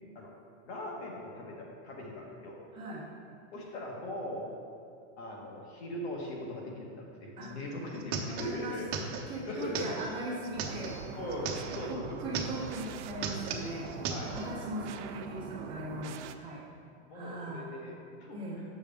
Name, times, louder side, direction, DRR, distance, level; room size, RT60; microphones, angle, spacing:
voice 1, 0.6-2.6 3.5-4.5 5.2-8.8 9.2-9.9 11.1-12.2 14.1-14.3 17.0-18.4, left 1 dB, 65° left, -1 dB, 1.7 m, -40 dB
voice 2, 2.7-3.1 7.4-7.5 8.2-8.8 9.3-11.0 11.8-13.9 14.3-16.7 17.1-17.7 18.3-18.6, right 1 dB, 15° right, -8 dB, 1.1 m, -39 dB
sound 1, 7.4-7.5 7.7-11.9 12.2-12.8 13.1-14.5, right 5 dB, 50° right, 1.0 m, -37 dB
sound 2, 10.5-16.3, right 7 dB, 80° right, 0.6 m, -43 dB
8.2 x 6.4 x 3.6 m, 2.5 s
supercardioid pair, 175°, 34 cm